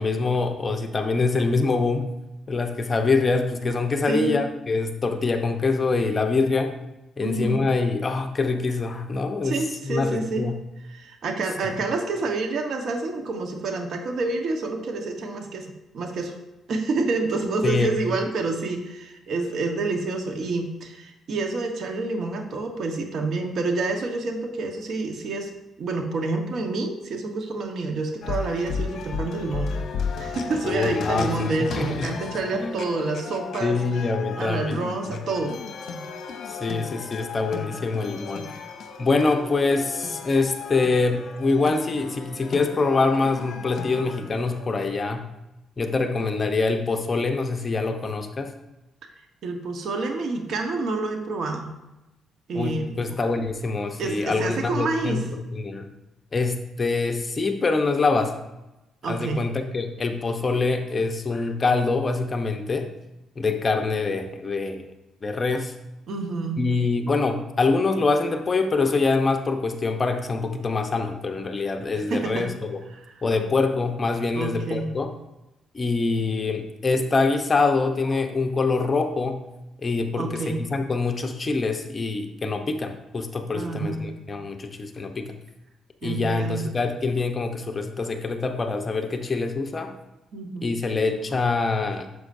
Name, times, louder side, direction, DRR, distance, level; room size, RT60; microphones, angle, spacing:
voice 1, 0.0-2.1 2.5-6.7 7.2-10.6 17.6-17.9 30.6-32.1 32.6-32.9 33.6-34.8 35.1-35.2 36.5-38.5 39.0-45.2 45.8-48.5 52.5-55.9 56.3-58.4 59.1-62.9 63.4-64.9 65.2-65.7 66.6-72.8 73.2-75.1 75.7-79.4 79.8-85.4 86.0-89.9 90.6-92.1, left 3 dB, 30° left, 6 dB, 0.8 m, -25 dB
voice 2, 4.1-4.4 7.2-7.6 9.4-10.4 10.9-15.7 15.9-16.3 16.7-25.5 25.8-29.8 30.2-33.8 34.4-35.5 49.4-51.7 52.5-53.0 54.0-55.2 59.0-59.4 66.1-66.6 72.1-72.5 72.9-73.0 74.4-74.9 80.2-80.6 83.5-84.1 86.0-86.7 90.3-90.7, right 3 dB, 65° right, 4 dB, 1.2 m, -28 dB
sound 1, 28.2-44.9, left 5 dB, 60° left, 0.9 m, -35 dB
9.5 x 6.8 x 2.7 m, 0.96 s
cardioid pair, 90°, 0 cm